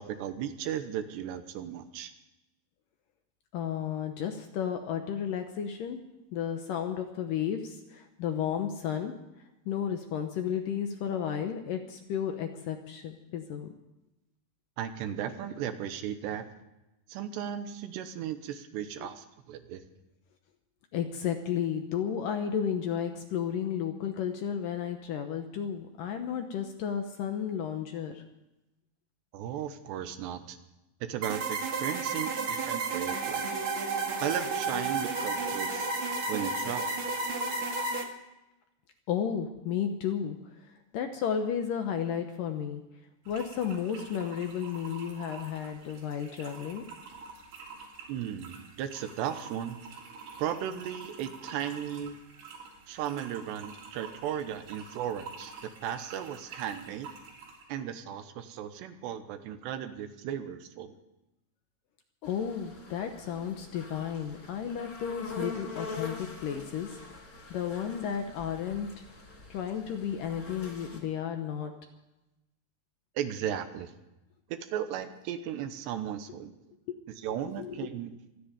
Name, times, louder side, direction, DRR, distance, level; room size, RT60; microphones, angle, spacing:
voice 1, 0.0-2.1 14.8-16.5 17.1-19.8 29.3-30.6 31.0-33.5 34.2-35.9 36.3-37.0 48.1-49.8 50.4-52.1 52.9-57.1 57.7-60.9 73.2-73.9 74.5-76.6 77.2-78.1, right 10 dB, 85° right, 9 dB, 3.2 m, -36 dB
voice 2, 3.5-6.0 6.3-9.1 9.7-13.7 19.0-19.1 20.9-28.2 39.1-42.8 43.3-46.8 62.2-67.0 67.5-68.9 69.5-71.7 76.9-77.0 77.3-77.9, left 8 dB, 70° left, 5 dB, 2.2 m, -33 dB
sound 1, 31.2-38.0, right 3 dB, 50° right, 1.6 m, -32 dB
sound 2, 43.3-57.7, right 5 dB, 70° right, 5.3 m, -48 dB
sound 3, 62.2-71.0, left 4 dB, 25° left, 3.1 m, -44 dB
26.0 x 10.0 x 5.1 m, 0.97 s
omnidirectional pair, 4.9 m